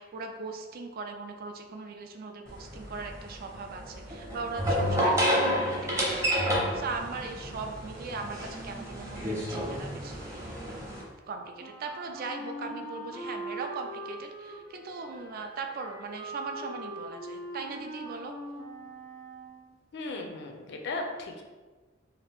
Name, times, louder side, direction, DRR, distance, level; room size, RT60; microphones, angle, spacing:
voice 1, 0.0-10.9 11.3-18.4, right 4 dB, 50° right, 5 dB, 0.3 m, -39 dB
sound 1, 2.5-11.0, equal, 15° right, 0.7 m, -30 dB
Wind instrument woodwind instrument, 11.6-19.7, right 1 dB, 75° right, 0.7 m, -42 dB
voice 2, 19.9-21.4, left 2 dB, 60° left, 3 dB, 0.4 m, -36 dB
2.8 x 2.4 x 3.4 m, 1.3 s
head